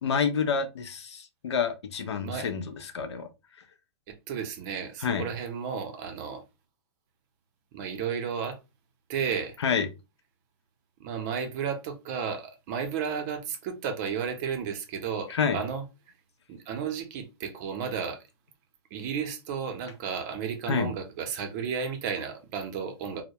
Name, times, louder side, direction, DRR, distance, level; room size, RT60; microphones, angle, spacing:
voice 1, 0.0-3.3 5.0-5.2 9.6-9.9 15.3-15.6 20.7-20.9, left 6 dB, 85° left, 0.5 m, -28 dB
voice 2, 2.2-2.5 4.1-6.4 7.7-8.6 9.1-9.6 11.0-15.8 16.5-18.2 18.9-23.2, right 7 dB, 40° right, 0.6 m, -33 dB
2.2 x 2.0 x 2.7 m
hypercardioid pair, 135°, 14 cm